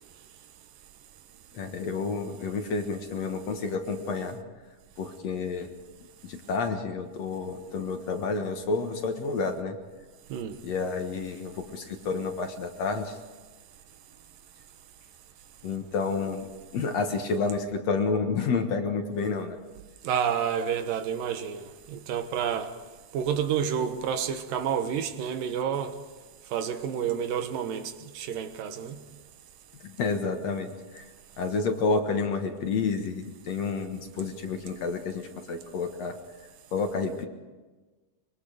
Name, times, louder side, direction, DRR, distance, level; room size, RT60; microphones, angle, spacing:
voice 1, 1.5-4.4 5.0-5.7 6.2-9.8 10.6-13.2 15.6-19.6 29.8-31.1 31.4-36.2 36.7-37.3, left 4 dB, 60° left, 2.3 m, -30 dB
voice 2, 20.0-22.7 23.1-25.9 26.5-29.0, right 8 dB, 80° right, 2.9 m, -29 dB
24.5 x 23.0 x 5.1 m
omnidirectional pair, 3.9 m